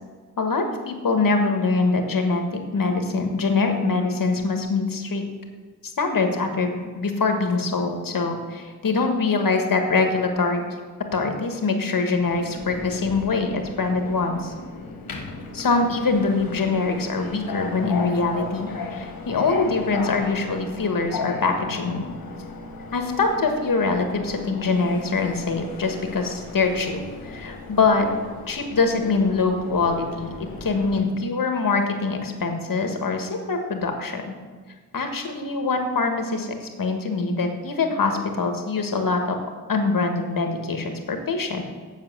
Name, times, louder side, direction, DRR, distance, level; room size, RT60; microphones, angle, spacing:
voice 1, 0.4-5.2 5.8-10.6 11.1-14.5 15.5-22.1 22.9-28.1 28.5-30.3 30.6-34.3 34.9-39.4 39.7-41.6, left 4 dB, 70° left, 5 dB, 1.4 m, -24 dB
Subway metro underground, 12.3-31.0, left 3 dB, 85° left, 1.2 m, -36 dB
7.3 x 5.9 x 7.6 m, 1.5 s
cardioid pair, 70°, 34 cm